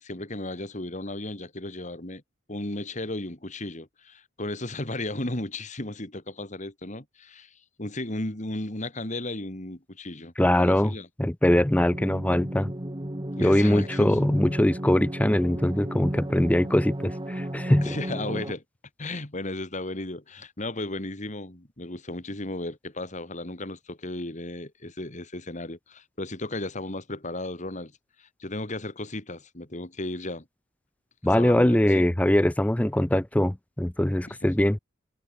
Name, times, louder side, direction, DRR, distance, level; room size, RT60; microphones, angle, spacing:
voice 1, 0.0-2.2 2.5-11.1 13.4-14.2 17.8-18.6 19.0-27.9 28.2-30.4 31.3-32.0 34.3-34.4, left 2 dB, 35° left, 2.6 m, -35 dB
voice 2, 10.4-10.9 11.2-12.7 13.4-18.0 31.2-34.8, left 1 dB, 5° left, 0.5 m, -22 dB
sound 1, 11.9-18.5, right 1 dB, 20° right, 1.6 m, -34 dB
head